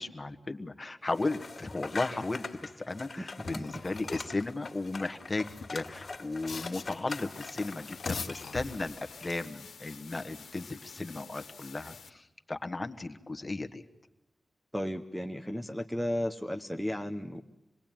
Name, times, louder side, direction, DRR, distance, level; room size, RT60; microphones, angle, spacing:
voice 1, 0.0-13.8, left 2 dB, 25° left, 6 dB, 1.4 m, -35 dB
sound 1, 1.1-9.6, left 4 dB, 45° left, 2.3 m, -44 dB
sound 2, 3.4-4.4 5.3-7.2 7.8-9.1, left 4 dB, 65° left, 1.3 m, -41 dB
sound 3, 7.1-12.1, left 6 dB, 90° left, 1.5 m, -50 dB
voice 2, 14.7-17.4, left 1 dB, ahead, 4 dB, 0.8 m, -34 dB
27.0 x 20.5 x 9.1 m, 0.97 s
wide cardioid pair, 120°, 0 cm